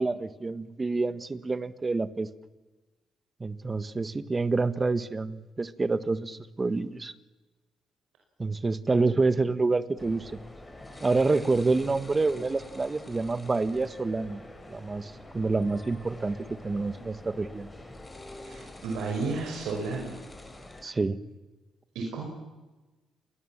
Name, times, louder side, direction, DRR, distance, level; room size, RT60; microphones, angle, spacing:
voice 1, 0.0-2.3 3.4-7.1 8.4-10.3 11.0-14.4 14.7-17.7 20.8-21.2, right 3 dB, 25° right, 13 dB, 1.5 m, -28 dB
sound 1, 10.0-20.8, left 2 dB, 20° left, 5.0 m, -46 dB
voice 2, 18.4-20.2 21.9-22.2, right 3 dB, 85° right, 0 dB, 5.6 m, -32 dB
29.0 x 22.0 x 7.4 m, 1.2 s
cardioid pair, 90°, 0 cm